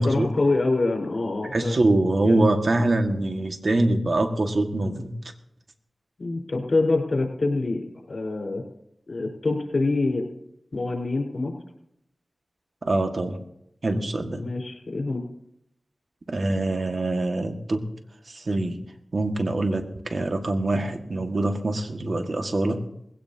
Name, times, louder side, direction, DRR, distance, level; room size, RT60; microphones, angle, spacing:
voice 1, 0.0-1.8 2.2-2.4 6.2-8.6 9.1-10.3 10.7-11.5 14.4-15.2, left 3 dB, 65° left, 1 dB, 4.6 m, -25 dB
voice 2, 1.5-5.2 12.8-13.4 13.8-14.4 16.3-17.9 18.3-18.8 19.1-22.8, right 2 dB, 60° right, 5 dB, 1.8 m, -24 dB
20.5 x 17.0 x 2.8 m, 0.79 s
cardioid pair, 40°, 0 cm